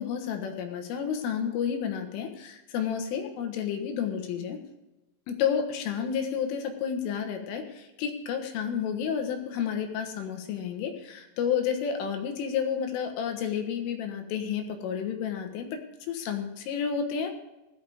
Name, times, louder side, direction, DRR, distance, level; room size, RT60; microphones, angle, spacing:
voice 1, 0.0-4.6 5.3-15.8 16.1-17.3, left 7 dB, 80° left, 5 dB, 3.8 m, -31 dB
17.0 x 12.0 x 3.5 m, 1.0 s
omnidirectional pair, 5.8 m